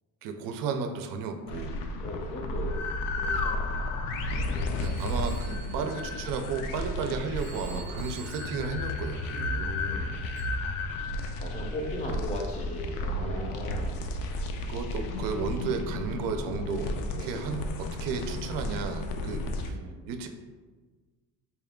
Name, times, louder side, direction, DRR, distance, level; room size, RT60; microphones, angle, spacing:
voice 1, 0.2-1.7 4.7-9.5 13.1-13.6 14.7-16.9 17.2-19.8 20.1-20.3, right 5 dB, 65° right, 6 dB, 0.5 m, -34 dB
sound 1, 1.5-19.7, left 2 dB, 70° left, 0.5 m, -33 dB
voice 2, 2.0-2.9 3.2-4.0 4.4-4.9 5.8-5.9 7.5-8.0 9.3-10.2 11.4-14.0 17.1-17.5 19.3-20.0, left 1 dB, 20° left, 1 dB, 0.5 m, -39 dB
Telephone, 4.8-6.9 7.4-9.7 10.4-10.5, right 6 dB, 20° right, 0.6 m, -49 dB
4.1 x 2.3 x 3.5 m, 1.4 s
cardioid pair, 145°, 35 cm